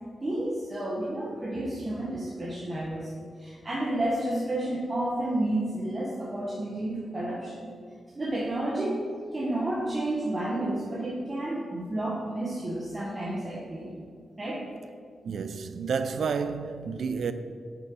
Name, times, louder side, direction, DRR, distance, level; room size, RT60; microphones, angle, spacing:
voice 1, 0.2-7.7 8.1-13.9 14.4-14.7, right 1 dB, 30° right, 1.3 m, -31 dB
voice 2, 15.2-17.3, right 5 dB, 75° right, 0.4 m, -30 dB
5.9 x 5.4 x 5.4 m
cardioid pair, 70°, 0 cm